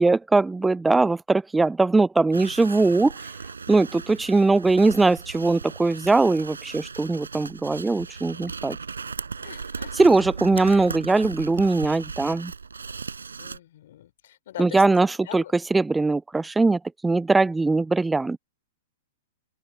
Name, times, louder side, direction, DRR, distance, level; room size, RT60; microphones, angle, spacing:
voice 1, 0.0-3.1 3.7-8.8 9.9-12.5 14.6-18.4, right 3 dB, 10° right, 0.4 m, -21 dB
sound 1, 2.3-13.6, right 5 dB, 90° right, 7.6 m, -37 dB
voice 2, 9.4-9.9 10.6-10.9 13.4-15.5, left 12 dB, 65° left, 3.8 m, -42 dB
open air
hypercardioid pair, 115°, 0 cm